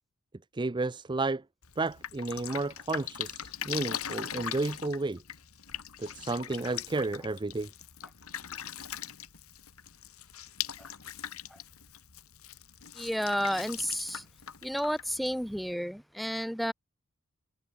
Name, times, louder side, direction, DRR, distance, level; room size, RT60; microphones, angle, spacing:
voice 1, 0.5-1.4 1.8-5.2 6.0-7.7, right 3 dB, 20° right, 0.5 m, -32 dB
Drip, 1.6-15.7, left 9 dB, 75° left, 2.4 m, -41 dB
voice 2, 12.9-14.2 14.6-16.7, equal, ahead, 2.7 m, -31 dB
head